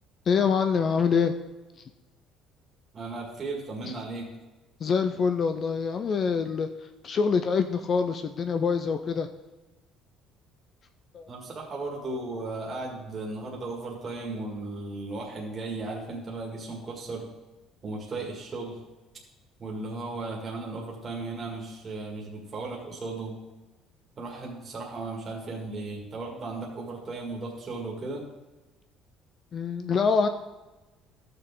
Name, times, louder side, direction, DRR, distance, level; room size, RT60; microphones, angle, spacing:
voice 1, 0.3-1.4 3.8-3.9 4.8-6.7 7.0-9.3 11.1-11.3 29.5-30.3, left 5 dB, 30° left, 8 dB, 0.4 m, -25 dB
voice 2, 2.9-4.3 11.3-17.3 17.8-18.8 19.6-23.4 24.2-28.2, right 3 dB, 25° right, -2 dB, 1.9 m, -36 dB
13.5 x 6.6 x 3.7 m, 1.1 s
cardioid pair, 160°, 0 cm